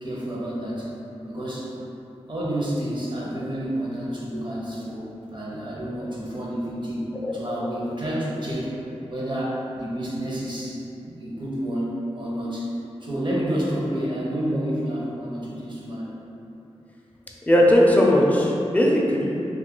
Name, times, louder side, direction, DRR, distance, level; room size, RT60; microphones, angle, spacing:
voice 1, 0.0-0.9 1.3-1.7 2.3-8.8 9.1-16.1, equal, 45° right, -5 dB, 0.8 m, -29 dB
voice 2, 17.5-19.5, left 1 dB, 15° left, -3 dB, 0.5 m, -18 dB
2.7 x 2.4 x 3.7 m, 2.9 s
cardioid pair, 50°, 11 cm